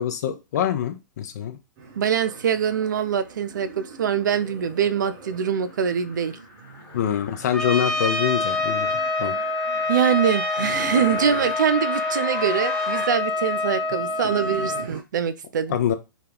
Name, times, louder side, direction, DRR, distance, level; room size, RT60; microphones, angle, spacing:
voice 1, 0.0-1.6 6.9-8.9 9.2-9.3 15.7-15.9, left 9 dB, 55° left, 0.5 m, -25 dB
sound 1, 1.8-15.0, right 4 dB, 35° right, 0.8 m, -41 dB
voice 2, 2.0-6.4 9.9-15.8, right 8 dB, 65° right, 0.4 m, -24 dB
sound 2, 4.7-13.0, left 2 dB, 25° left, 0.9 m, -40 dB
Trumpet, 7.5-14.9, left 3 dB, 5° left, 0.5 m, -26 dB
2.2 x 2.2 x 3.4 m
figure-of-eight pair, 110°, 11 cm